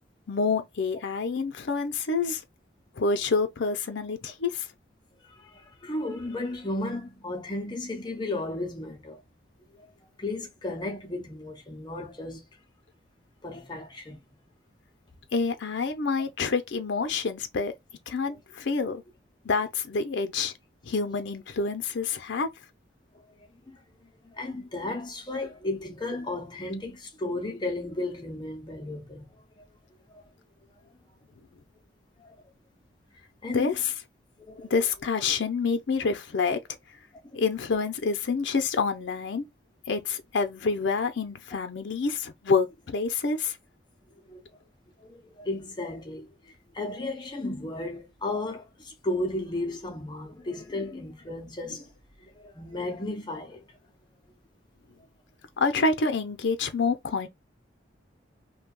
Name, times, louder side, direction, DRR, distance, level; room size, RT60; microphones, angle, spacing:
voice 1, 0.3-2.4 3.0-4.7 15.3-17.7 18.1-19.0 19.4-20.5 20.8-22.5 33.5-33.9 34.7-36.6 37.3-39.4 39.9-43.6 55.6-57.3, left 4 dB, 70° left, 0.5 m, -27 dB
voice 2, 5.2-9.2 9.8-9.9 10.2-12.4 13.4-14.2 23.7-29.6 30.1-30.2 32.2-32.4 33.4-33.7 34.4-34.7 37.2-37.4 44.3-44.4 45.0-51.9 52.2-53.6, left 2 dB, 25° left, 0.6 m, -34 dB
2.6 x 2.2 x 3.6 m
head